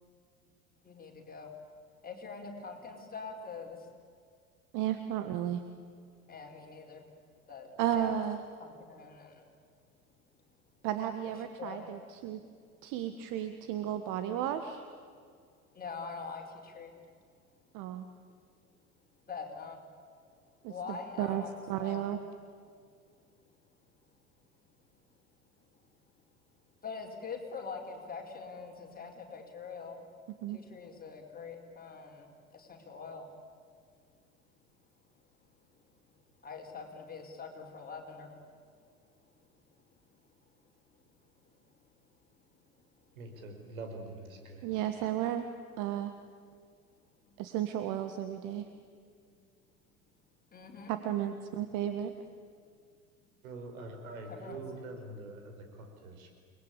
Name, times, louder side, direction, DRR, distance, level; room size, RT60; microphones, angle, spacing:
voice 1, 0.8-1.5 2.0-3.9 6.3-7.0 7.5-8.1 8.6-9.4 11.3-11.9 13.9-14.1 15.1-15.2 15.7-16.9 19.3-19.8 20.7-21.5 21.8-22.0 26.8-30.0 30.5-33.3 36.4-38.3 47.2-47.3 50.5-50.9 54.3-54.6, left 5 dB, 20° left, 2 dB, 5.0 m, -44 dB
voice 2, 4.7-5.6 7.8-8.4 10.8-12.4 12.8-14.8 17.7-18.0 20.6-21.4 21.7-22.2 30.4-30.6 44.6-45.5 45.8-46.1 47.4-48.7 50.9-52.1, right 11 dB, 45° right, 8 dB, 1.6 m, -33 dB
voice 3, 43.2-44.7 53.4-56.4, right 2 dB, 65° right, 4 dB, 5.3 m, -44 dB
30.0 x 21.0 x 8.7 m, 2.1 s
figure-of-eight pair, 75°, 44 cm